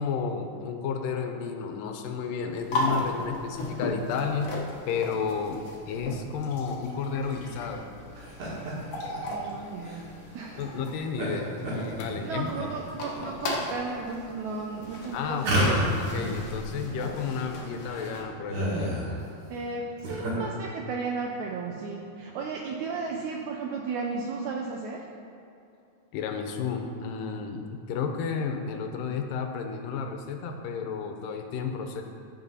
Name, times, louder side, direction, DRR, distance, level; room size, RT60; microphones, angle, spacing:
voice 1, 0.0-4.5 4.9-5.6 5.9-7.9 10.6-12.6 15.1-19.0 26.1-32.0, left 6 dB, 80° left, 5 dB, 2.3 m, -32 dB
sound 1, 2.5-18.2, left 1 dB, 65° left, 1.5 m, -37 dB
sound 2, 8.1-8.7 9.1-9.2 9.8-10.0 11.2-11.3 11.6-12.6 13.1-13.6 14.2-14.3 15.4-16.4 16.6-16.7 16.9-17.0 17.5-17.6 17.8-19.2 19.8-20.3, right 1 dB, 60° right, 3.4 m, -29 dB
voice 2, 9.3-10.7 12.2-16.0 16.7-16.9 19.5-25.0, right 4 dB, 80° right, 0 dB, 1.7 m, -34 dB
14.5 x 5.8 x 4.1 m, 2.6 s
omnidirectional pair, 4.0 m